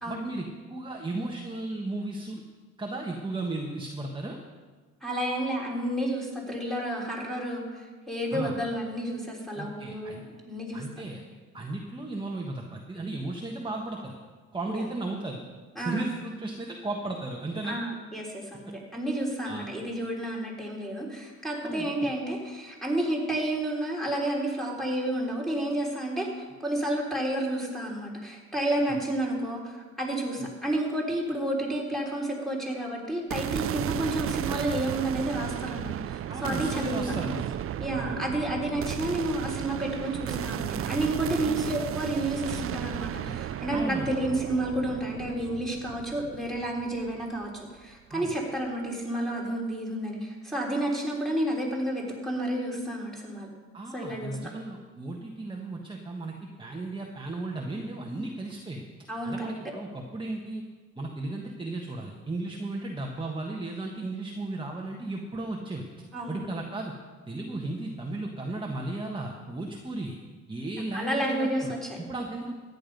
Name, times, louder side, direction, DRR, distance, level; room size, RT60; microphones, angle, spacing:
voice 1, 0.0-2.4 2.8-4.4 8.3-8.6 9.5-10.2 10.7-11.2 11.5-14.2 14.5-15.4 15.8-17.8 19.4-19.7 21.6-22.1 28.9-29.0 30.4-30.5 36.3-37.6 38.0-38.2 41.4-41.8 43.7-44.1 48.1-48.4 53.7-58.8 59.2-60.6 60.9-65.9 66.3-66.9 67.3-70.2 70.5-71.7 72.1-72.5, right 2 dB, 15° right, 0 dB, 1.5 m, -35 dB
voice 2, 5.0-10.8 14.7-14.8 15.8-16.1 17.6-37.0 37.8-53.5 53.9-54.4 59.1-59.5 66.1-66.4 70.9-72.0, right 1 dB, ahead, -2 dB, 3.6 m, -31 dB
sound 1, 33.3-47.6, right 11 dB, 50° right, 0.4 m, -34 dB
14.0 x 9.8 x 5.4 m, 1.4 s
cardioid pair, 90°, 30 cm